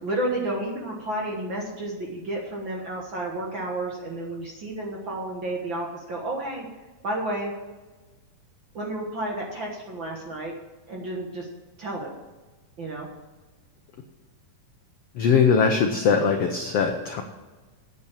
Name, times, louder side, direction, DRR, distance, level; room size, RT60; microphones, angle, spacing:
voice 1, 0.0-6.7 7.0-7.5 8.7-10.5 10.9-11.5 11.8-12.2 12.8-13.1, right 1 dB, 50° right, -1 dB, 1.6 m, -31 dB
voice 2, 15.1-17.2, left 5 dB, 80° left, 4 dB, 1.3 m, -21 dB
9.1 x 8.4 x 8.4 m, 1.3 s
omnidirectional pair, 3.9 m